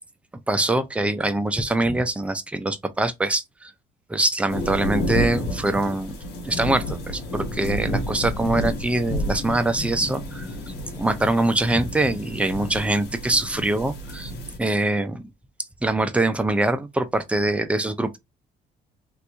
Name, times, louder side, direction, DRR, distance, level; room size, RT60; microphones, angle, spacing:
voice 1, 0.5-3.7 4.1-6.2 6.4-10.5 11.0-14.3 14.6-15.3 15.8-18.2, right 2 dB, 5° right, 0.5 m, -23 dB
sound 1, 4.5-14.6, equal, 85° left, 1.4 m, -30 dB
3.0 x 2.5 x 3.4 m
cardioid pair, 110°, 17 cm